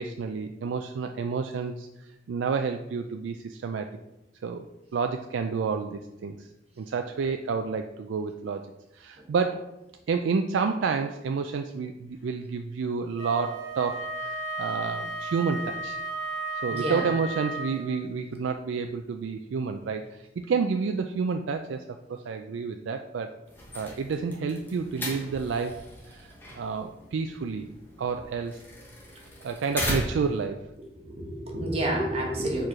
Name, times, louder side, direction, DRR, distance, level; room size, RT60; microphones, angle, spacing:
voice 1, 0.0-3.9 4.4-4.7 4.9-6.5 6.8-8.6 8.9-9.7 10.1-16.0 16.6-23.3 23.7-25.7 26.0-27.7 28.0-28.6 29.4-30.6, right 5 dB, 85° right, 5 dB, 0.4 m, -30 dB
Wind instrument woodwind instrument, 13.2-18.1, right 2 dB, 80° left, 1.6 m, -34 dB
voice 2, 16.7-17.1 31.0-32.7, right 1 dB, 30° right, -1 dB, 1.1 m, -29 dB
sound 1, 23.5-30.4, left 1 dB, 10° left, 1.1 m, -37 dB
4.7 x 4.5 x 4.8 m, 0.93 s
head